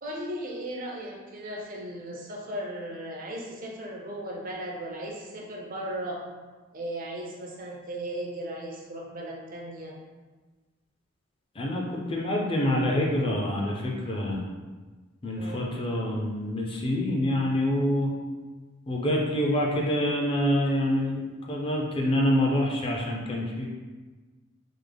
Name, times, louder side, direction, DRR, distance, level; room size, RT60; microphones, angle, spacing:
voice 1, 0.0-6.2 6.7-10.0 15.4-15.7, right 1 dB, 45° right, -1 dB, 0.5 m, -36 dB
voice 2, 11.6-14.4 15.2-18.1 18.9-23.7, left 1 dB, 25° left, -1 dB, 0.4 m, -26 dB
3.5 x 2.1 x 3.3 m, 1.3 s
head